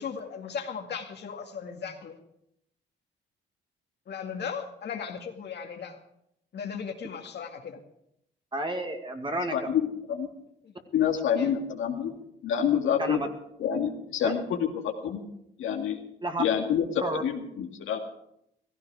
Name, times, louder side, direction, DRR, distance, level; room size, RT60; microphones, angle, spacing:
voice 1, 0.0-2.2 4.1-6.0 6.5-7.8 10.6-10.7 11.3-11.5, left 6 dB, 60° left, 4 dB, 2.2 m, -37 dB
voice 2, 8.5-9.7 13.0-13.3 14.2-14.3 16.2-16.4 17.0-17.2, right 1 dB, 25° right, 5 dB, 2.2 m, -31 dB
voice 3, 9.5-10.3 10.9-12.1 12.4-13.2 13.6-14.7 15.0-15.2 15.6-16.0 16.4-18.0, left 8 dB, 80° left, 3 dB, 2.2 m, -27 dB
16.0 x 15.0 x 4.9 m, 0.77 s
cardioid pair, 90°, 20 cm